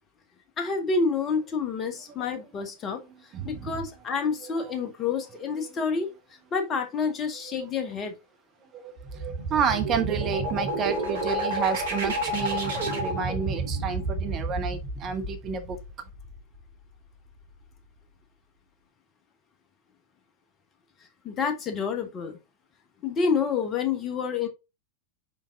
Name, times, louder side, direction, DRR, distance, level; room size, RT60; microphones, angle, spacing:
voice 1, 0.6-3.0 3.4-6.1 6.5-8.1 21.2-22.4 23.0-24.5, left 5 dB, 25° left, 1.4 m, -28 dB
voice 2, 3.3-3.8 4.6-4.7 7.5-7.9 8.7-15.8, right 6 dB, 30° right, 1.0 m, -30 dB
sound 1, 9.0-16.6, right 2 dB, 60° right, 2.4 m, -30 dB
5.2 x 5.2 x 3.8 m
figure-of-eight pair, 90°, 0 cm